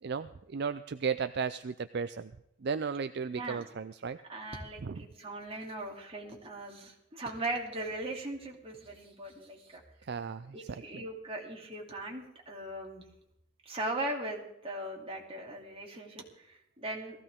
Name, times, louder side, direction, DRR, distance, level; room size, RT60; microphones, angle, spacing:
voice 1, 0.0-2.3 2.6-4.2 4.8-5.1 10.0-11.1, right 5 dB, 55° right, 11 dB, 0.4 m, -35 dB
voice 2, 3.3-3.6 4.3-9.8 10.5-13.0 13.6-17.2, right 1 dB, 30° right, -1 dB, 2.8 m, -39 dB
19.0 x 15.0 x 3.6 m, 0.79 s
head